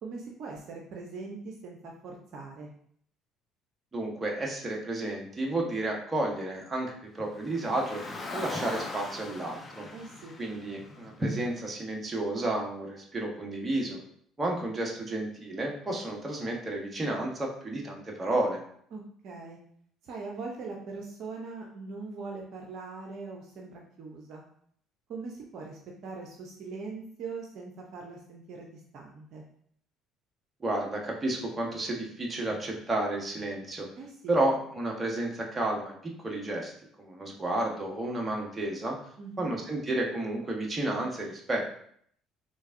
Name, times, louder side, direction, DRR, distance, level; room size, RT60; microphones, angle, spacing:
voice 1, 0.0-2.7 9.9-10.4 18.9-19.6 20.0-24.4 25.1-29.4 34.0-34.4 39.2-39.5, right 4 dB, 60° right, 0 dB, 0.6 m, -41 dB
voice 2, 3.9-8.0 8.3-9.9 10.4-14.0 14.4-18.6 30.6-33.9 34.3-36.7 37.0-39.0 39.4-41.7, right 1 dB, 25° right, 0 dB, 1.1 m, -31 dB
Car, 7.4-11.7, left 3 dB, 25° left, 0.9 m, -40 dB
3.8 x 3.3 x 2.6 m, 0.64 s
hypercardioid pair, 60°, 0 cm